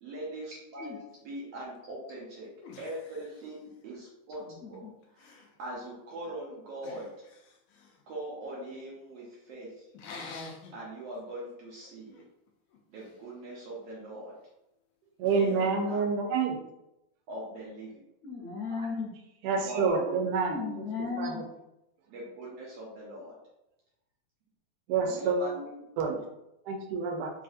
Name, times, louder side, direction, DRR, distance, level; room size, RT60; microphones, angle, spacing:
voice 1, 0.0-2.5 2.8-4.4 4.7-4.9 5.1-7.1 8.1-9.8 10.7-12.2 12.9-14.4 15.3-16.0 17.3-18.0 19.6-20.2 21.0-21.3 22.1-23.4 25.0-26.2, right 1 dB, 70° right, -5 dB, 1.6 m, -41 dB
sound 1, 1.9-2.0 2.6-4.0 4.3-4.8 5.0-5.6 6.8-8.0 9.9-10.8 11.3-11.5 11.8-13.2 15.2-15.6, left 3 dB, 85° left, 1.4 m, -48 dB
voice 2, 4.4-4.9 18.2-19.1 20.5-21.4, left 4 dB, 65° left, -6 dB, 1.7 m, -36 dB
voice 3, 15.2-16.6 19.4-20.6 21.2-21.4 24.9-25.4 26.0-26.2 26.7-27.3, right 5 dB, 90° right, 3 dB, 2.1 m, -28 dB
4.8 x 2.7 x 2.5 m, 0.88 s
omnidirectional pair, 3.5 m